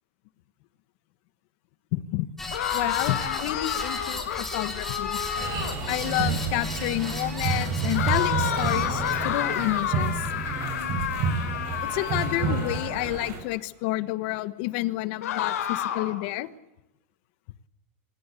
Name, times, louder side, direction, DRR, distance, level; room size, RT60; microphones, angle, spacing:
voice 1, 1.9-2.3 2.7-5.2 5.9-10.1 11.8-16.5, left 17 dB, 45° left, 16 dB, 1.4 m, -29 dB
sound 1, 2.4-9.1, left 2 dB, 5° left, 4.0 m, -36 dB
sound 2, 2.5-5.9 7.9-13.2 15.2-16.2, left 10 dB, 85° left, 4.3 m, -30 dB
sound 3, 5.3-13.4, right 4 dB, 35° right, 6.9 m, -29 dB
26.0 x 19.5 x 8.4 m, 0.90 s
supercardioid pair, 170°, 8 cm